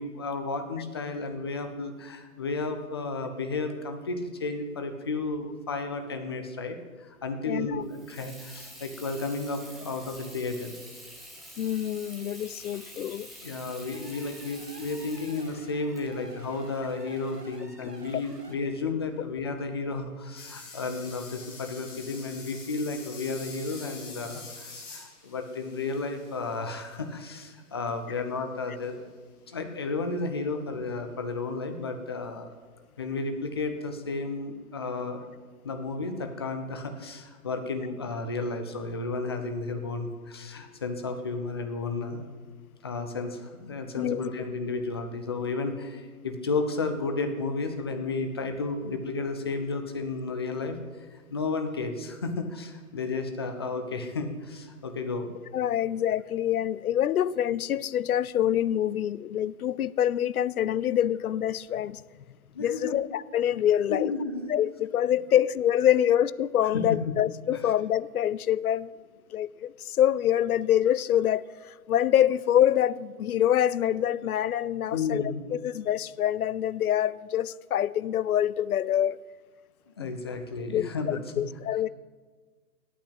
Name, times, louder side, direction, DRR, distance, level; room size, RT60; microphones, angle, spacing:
voice 1, 0.0-10.8 13.4-29.1 29.5-32.5 33.0-35.3 35.6-42.3 42.8-55.3 62.5-63.0 63.9-64.5 66.7-67.0 67.5-67.6 74.9-75.4 79.9-81.4, left 3 dB, 20° left, 0.4 m, -33 dB
voice 2, 7.5-7.8 11.6-13.3 17.8-17.9 44.0-44.2 55.5-62.0 62.6-64.1 64.5-68.9 69.3-79.2 80.0-80.1 80.7-81.9, left 11 dB, 65° left, 0.5 m, -26 dB
Water tap faucet / Sink (filling or washing), 7.8-17.4, equal, ahead, 1.1 m, -48 dB
sound 1, 13.7-18.6, right 2 dB, 85° right, 1.7 m, -50 dB
sound 2, 20.4-27.3 28.8-28.9, left 3 dB, 50° left, 3.0 m, -46 dB
9.0 x 8.5 x 7.9 m
figure-of-eight pair, 130°, 47 cm